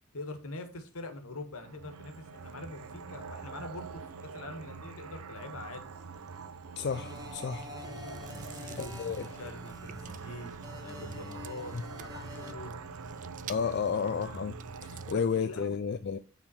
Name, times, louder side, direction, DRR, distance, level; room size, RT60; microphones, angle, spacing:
voice 1, 0.1-4.0 4.3-5.8 8.2-10.5 10.8-12.8 13.5-13.6 14.8-15.8, left 2 dB, 80° left, 1.5 m, -44 dB
sound 1, 1.6-15.1, right 5 dB, 85° right, 0.6 m, -45 dB
voice 2, 6.8-7.7 8.8-9.3 11.7-11.8 13.5-14.6 15.1-16.2, left 6 dB, 50° left, 0.4 m, -31 dB
sound 2, 6.9-12.5, left 2 dB, 20° right, 1.3 m, -47 dB
Chewing mastication, 7.1-15.3, right 5 dB, 35° right, 0.3 m, -48 dB
8.5 x 4.1 x 4.3 m
head